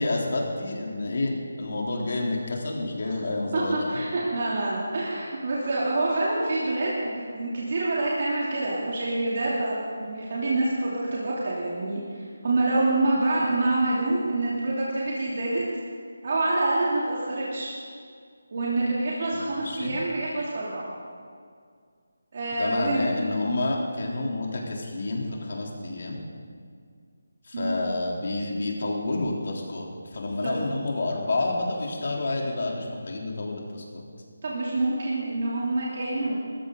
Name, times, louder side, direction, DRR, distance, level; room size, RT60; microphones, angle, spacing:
voice 1, 0.0-3.9 19.3-19.9 22.6-26.2 27.5-34.0, left 2 dB, 55° left, -1 dB, 3.4 m, -29 dB
voice 2, 3.5-15.6 16.2-17.7 18.5-20.9 22.3-23.0 27.5-28.0 30.4-30.7 34.4-36.4, right 2 dB, 45° right, -6 dB, 3.0 m, -26 dB
20.5 x 14.5 x 3.9 m, 2.1 s
figure-of-eight pair, 155°, 0 cm